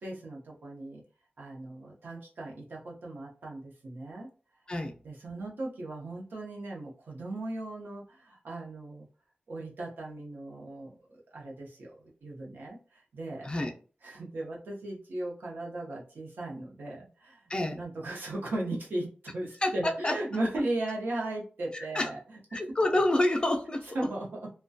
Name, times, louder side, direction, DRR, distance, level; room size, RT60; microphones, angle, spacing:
voice 1, 0.0-1.0 1.4-4.3 5.0-9.1 9.5-13.5 14.0-22.2 22.5-22.8 23.9-24.5, right 1 dB, 85° right, -2 dB, 0.7 m, -37 dB
voice 2, 17.5-17.8 19.6-20.2 21.7-22.1 22.5-23.9, left 1 dB, 30° left, 4 dB, 0.4 m, -28 dB
2.3 x 2.2 x 2.6 m, 0.38 s
wide cardioid pair, 110°, 3 cm